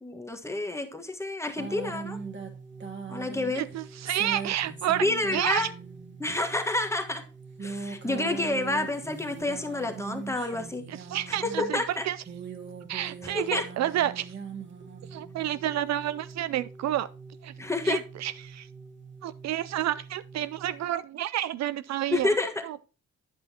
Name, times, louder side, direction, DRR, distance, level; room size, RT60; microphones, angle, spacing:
voice 1, 0.0-2.2 3.1-3.6 5.0-5.7 6.2-7.2 7.6-10.8 11.4-12.1 13.3-13.6 17.6-18.0 22.1-22.6, left 2 dB, 10° left, 1.3 m, -29 dB
sound 1, 1.6-20.9, right 5 dB, 40° right, 1.9 m, -41 dB
voice 2, 3.6-5.7 10.9-11.8 12.1-12.2 12.9-14.4 15.1-17.1 17.4-17.5 17.8-18.7 19.2-22.3 22.6-22.8, right 12 dB, 65° right, 0.4 m, -30 dB
8.9 x 8.1 x 2.8 m
cardioid pair, 90°, 30 cm